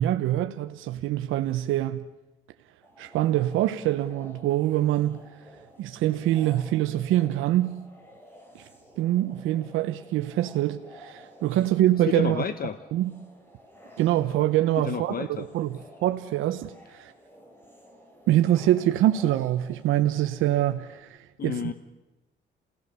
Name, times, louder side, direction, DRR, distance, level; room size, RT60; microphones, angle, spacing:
voice 1, 0.0-2.0 3.0-5.2 5.8-7.7 8.5-8.7 9.0-12.4 12.9-13.1 14.0-15.3 15.5-17.1 18.3-21.6, right 13 dB, 90° right, 0.9 m, -24 dB
sound 1, 2.8-21.0, equal, 10° left, 5.5 m, -51 dB
voice 2, 12.0-12.8 14.8-15.5 21.4-21.7, left 8 dB, 50° left, 1.0 m, -30 dB
30.0 x 17.0 x 6.8 m
cardioid pair, 90°, 20 cm